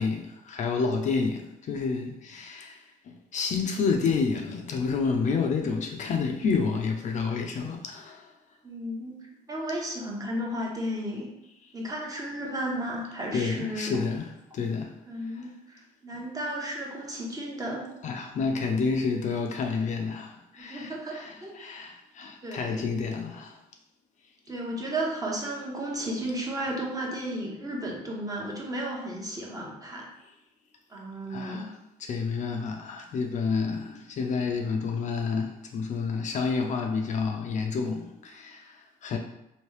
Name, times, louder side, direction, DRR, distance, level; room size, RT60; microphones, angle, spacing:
voice 1, 0.0-8.3 13.3-14.9 15.3-15.5 16.1-16.2 18.0-23.6 31.3-31.7 32.0-39.2, left 5 dB, 45° left, 3 dB, 0.4 m, -29 dB
voice 2, 8.6-9.2 9.5-11.3 11.7-14.0 15.1-17.9 20.6-21.6 22.4-22.9 24.5-30.1 30.9-31.6, right 1 dB, 20° right, -2 dB, 0.8 m, -33 dB
3.0 x 2.7 x 3.1 m, 0.87 s
cardioid pair, 110°, 17 cm